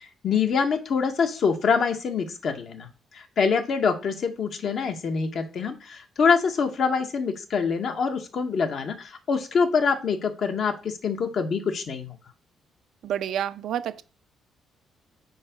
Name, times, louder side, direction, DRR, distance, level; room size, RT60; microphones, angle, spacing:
voice 1, 0.2-2.9 3.1-12.1, left 5 dB, 60° left, 1.3 m, -25 dB
voice 2, 13.0-14.0, right 10 dB, 75° right, 0.5 m, -29 dB
5.4 x 4.5 x 5.1 m
cardioid pair, 90°, 0 cm